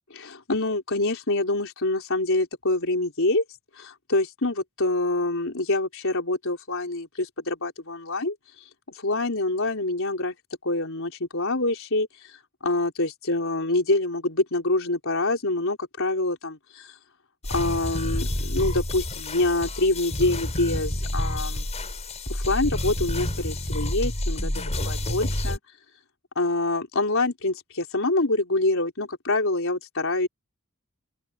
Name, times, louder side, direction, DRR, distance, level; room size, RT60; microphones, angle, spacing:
voice 1, 0.1-3.4 3.8-8.4 8.9-10.3 10.6-12.4 12.6-16.9 17.5-21.6 22.3-25.6 26.4-30.3, left 2 dB, 65° left, 4.5 m, -26 dB
sound 1, 17.4-25.6, left 1 dB, 30° left, 6.5 m, -29 dB
open air
head